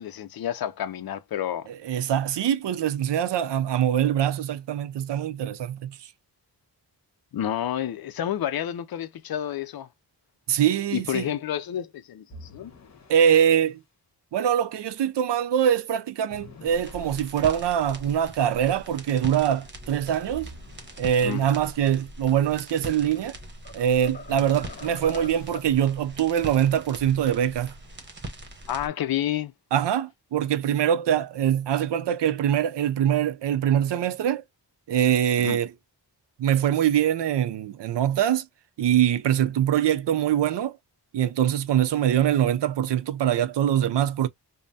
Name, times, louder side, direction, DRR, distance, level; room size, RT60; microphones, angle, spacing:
voice 1, 0.0-1.7 7.3-9.9 10.9-12.7 21.2-21.4 28.7-29.5 35.4-35.6, left 11 dB, 60° left, 0.5 m, -30 dB
voice 2, 1.8-6.0 10.5-11.3 13.1-13.8 14.3-20.5 21.0-23.3 23.7-27.7 29.7-34.4 34.9-35.7 36.4-38.4 38.8-40.8 41.1-44.3, right 10 dB, 85° right, 0.6 m, -23 dB
sound 1, 12.3-13.7 16.3-17.8 20.3-21.7 24.3-25.9, left 2 dB, 40° left, 1.3 m, -48 dB
sound 2, 16.7-28.9, right 1 dB, 25° right, 1.0 m, -42 dB
sound 3, 22.9-23.3 23.6-25.8, left 4 dB, 20° left, 1.0 m, -43 dB
5.3 x 2.0 x 2.7 m
wide cardioid pair, 170°, 41 cm